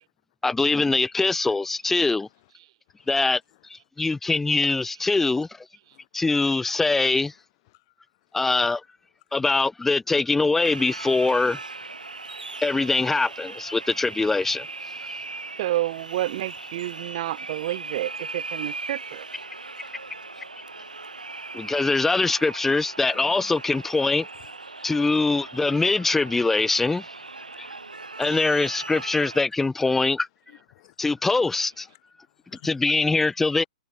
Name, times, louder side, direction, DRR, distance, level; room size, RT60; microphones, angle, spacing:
voice 1, 0.4-2.3 3.1-3.4 3.7-5.5 6.1-7.3 8.3-8.8 9.3-11.6 12.6-14.7 21.5-24.3 24.8-27.1 27.6-27.7 28.2-30.3 31.0-31.9 32.6-33.6, left 3 dB, 5° left, 0.7 m, -23 dB
voice 2, 7.3-8.4 9.9-10.0 11.6-12.1 14.9-15.8 16.4-17.2 17.6-17.9 18.2-18.3 19.5-21.2 23.1-24.6 25.6-25.9 27.4-27.6 27.8-28.3 30.5-32.7, left 21 dB, 40° left, 7.2 m, -57 dB
sound 1, 10.6-29.4, right 3 dB, 80° right, 1.8 m, -38 dB
voice 3, 15.6-19.3, right 15 dB, 45° right, 0.4 m, -29 dB
figure-of-eight pair, 115°, 4 cm